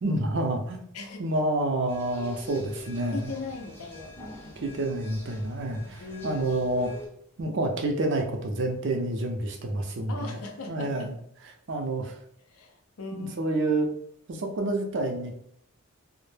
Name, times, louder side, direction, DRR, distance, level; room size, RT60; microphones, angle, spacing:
voice 1, 0.0-0.8 1.2-3.3 4.6-6.9 7.4-10.4 10.7-11.2 11.7-12.1 13.1-13.9 14.3-15.3, right 2 dB, 55° right, 2 dB, 0.4 m, -28 dB
sound 1, 1.9-7.1, left 3 dB, 10° left, 0.4 m, -44 dB
voice 2, 3.1-4.2 6.0-6.5 10.1-11.1 12.5-13.3, left 3 dB, 85° left, 4 dB, 0.5 m, -39 dB
2.1 x 2.0 x 3.1 m, 0.70 s
head